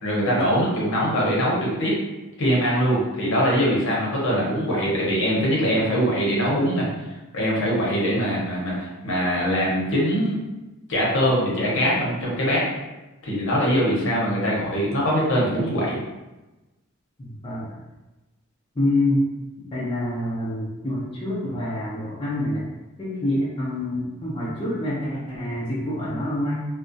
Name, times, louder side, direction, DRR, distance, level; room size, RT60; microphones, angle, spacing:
voice 1, 0.0-2.0 2.4-6.9 7.3-10.4 10.9-12.6 13.2-16.0, equal, 65° left, -5 dB, 0.7 m, -22 dB
voice 2, 17.2-17.7 18.8-19.2 19.6-22.6 23.0-26.6, left 1 dB, 25° left, -8 dB, 0.5 m, -26 dB
2.3 x 2.0 x 2.5 m, 1.1 s
head